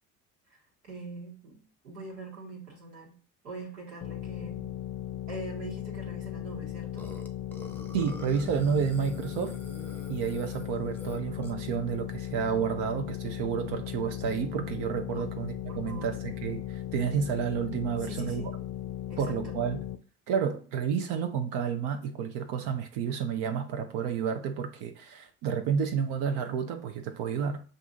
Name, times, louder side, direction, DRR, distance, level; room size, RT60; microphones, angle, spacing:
voice 1, 0.8-3.1 3.4-4.7 5.3-7.1 15.1-15.3 15.7-16.1 18.0-18.5 19.1-19.6, right 3 dB, 90° right, 1.6 m, -43 dB
sound 1, 4.0-20.0, left 11 dB, 50° left, 0.6 m, -37 dB
Burping eructation, 7.0-11.7, left 1 dB, 5° left, 0.7 m, -46 dB
voice 2, 7.9-9.6 10.1-18.5 19.2-19.8 20.3-27.6, right 7 dB, 65° right, 0.6 m, -30 dB
6.6 x 2.6 x 2.6 m
hypercardioid pair, 60°, 45 cm